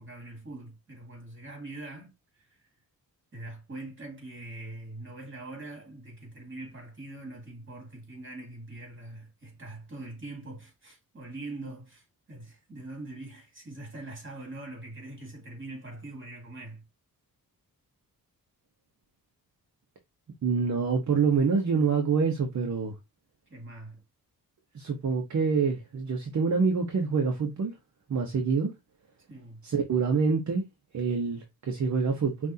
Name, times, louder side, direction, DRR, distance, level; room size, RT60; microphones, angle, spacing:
voice 1, 0.0-2.7 3.3-16.9 23.5-24.0 29.3-29.6, right 2 dB, 35° right, 2.4 m, -43 dB
voice 2, 20.4-22.9 24.7-27.7 28.1-28.7 29.6-30.6 30.9-32.5, right 5 dB, 50° right, 0.9 m, -26 dB
5.9 x 2.6 x 2.7 m
wide cardioid pair, 130°, 35 cm